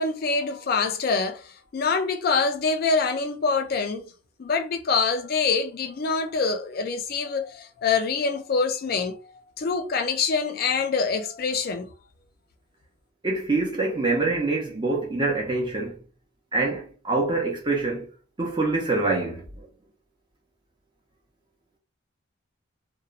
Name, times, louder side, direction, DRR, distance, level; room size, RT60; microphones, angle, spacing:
voice 1, 0.0-4.0 4.4-9.2 9.6-11.9, left 4 dB, 45° left, 0.3 m, -25 dB
voice 2, 13.2-16.0 16.5-18.1 18.4-19.7, right 3 dB, 20° right, 0.5 m, -25 dB
2.9 x 2.1 x 2.4 m
head